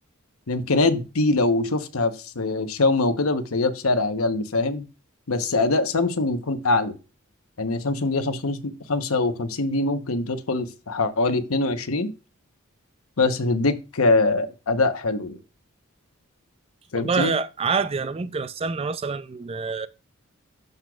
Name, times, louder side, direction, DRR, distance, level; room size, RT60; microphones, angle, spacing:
voice 1, 0.5-4.8 5.3-6.9 7.6-12.1 13.2-15.4 16.9-17.3, left 3 dB, 85° left, 1.0 m, -23 dB
voice 2, 16.9-19.9, right 5 dB, 30° right, 0.4 m, -26 dB
12.0 x 6.6 x 2.4 m
head